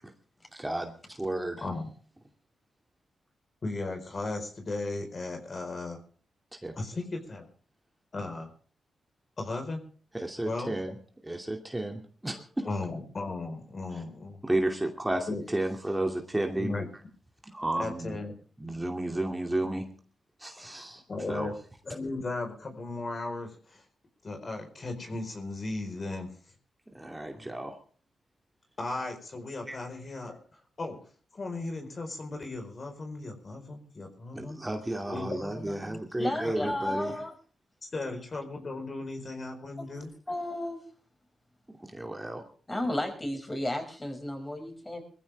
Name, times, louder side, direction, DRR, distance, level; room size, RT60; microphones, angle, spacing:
voice 1, 0.5-1.6 6.6-6.8 10.1-10.9 11.2-12.7 14.4-16.8 17.4-18.2 18.6-19.9 20.4-21.0 21.3-21.5 26.9-27.8 29.7-29.8 34.3-37.1 41.8-42.4, right 1 dB, 15° right, 3 dB, 2.6 m, -32 dB
voice 2, 3.6-6.0 6.8-7.5 8.1-8.5 9.4-9.8 10.4-10.7 12.6-14.4 15.3-15.4 16.6-16.8 17.8-18.3 20.6-20.7 21.1-21.5 21.8-23.8 24.2-26.3 27.3-27.5 28.8-30.4 30.8-31.0 31.3-34.6 35.1-36.0 36.4-37.0 37.9-40.1, left 2 dB, 45° left, 5 dB, 4.6 m, -36 dB
voice 3, 36.2-37.3 39.8-39.9 40.3-40.8 42.7-45.0, left 1 dB, 20° left, 4 dB, 6.2 m, -33 dB
21.5 x 15.0 x 3.5 m, 0.42 s
cardioid pair, 70°, 0 cm